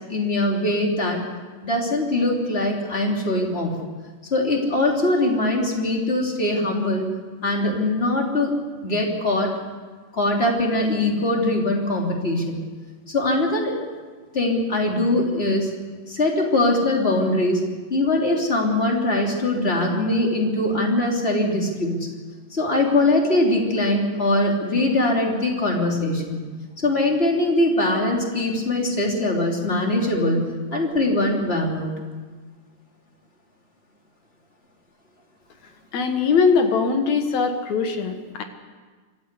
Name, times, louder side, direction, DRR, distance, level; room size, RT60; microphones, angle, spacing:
voice 1, 0.1-1.2 1.6-3.7 4.3-7.0 7.4-8.5 8.8-9.5 10.1-12.6 13.1-13.8 14.3-15.7 16.1-17.6 17.9-22.1 22.5-26.4 26.8-31.9, left 1 dB, 20° left, 0 dB, 3.2 m, -22 dB
voice 2, 35.9-38.4, left 5 dB, 60° left, 6 dB, 2.5 m, -21 dB
25.5 x 14.0 x 8.3 m, 1.4 s
omnidirectional pair, 3.8 m